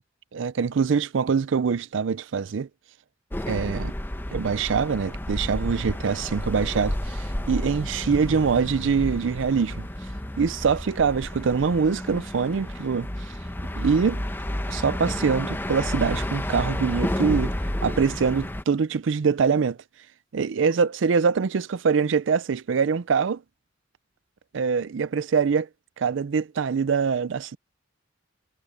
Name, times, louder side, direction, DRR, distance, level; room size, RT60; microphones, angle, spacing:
voice 1, 0.3-2.7 3.5-3.9 4.3-9.9 10.4-13.1 13.8-14.2 14.7-17.5 17.8-19.8 20.3-23.4 24.5-25.7 26.0-27.6, right 5 dB, 70° right, 0.5 m, -24 dB
sound 1, 3.3-18.6, left 1 dB, 10° left, 0.8 m, -31 dB
sound 2, 8.1-12.0, equal, 25° left, 4.7 m, -43 dB
head